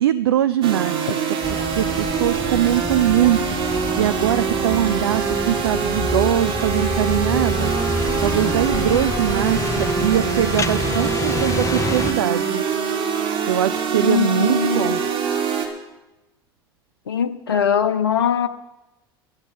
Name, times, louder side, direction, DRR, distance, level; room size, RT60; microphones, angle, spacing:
voice 1, 0.0-3.4 3.7-7.7 8.2-12.6 13.5-15.0, right 11 dB, 80° right, 13 dB, 0.5 m, -22 dB
sound 1, 0.6-15.7, right 6 dB, 45° right, 3.6 m, -24 dB
sound 2, 1.4-12.1, left 3 dB, 25° left, 1.0 m, -28 dB
voice 2, 14.0-15.0 17.1-18.5, left 7 dB, 80° left, 11 dB, 0.7 m, -21 dB
12.0 x 9.8 x 8.3 m, 1.0 s
figure-of-eight pair, 70°, 13 cm